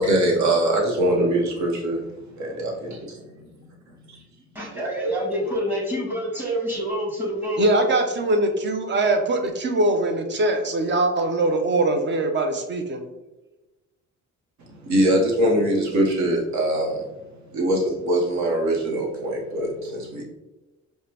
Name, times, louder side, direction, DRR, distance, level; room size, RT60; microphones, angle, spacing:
voice 1, 0.0-2.0 2.4-3.2 4.1-4.2 14.7-17.0 17.5-20.2, right 1 dB, 65° right, 1.1 m, -22 dB
voice 2, 4.5-7.7, equal, 5° right, 1.4 m, -27 dB
voice 3, 7.6-13.0, right 2 dB, 35° right, 0.7 m, -22 dB
4.8 x 2.2 x 2.8 m
cardioid pair, 90°, 30 cm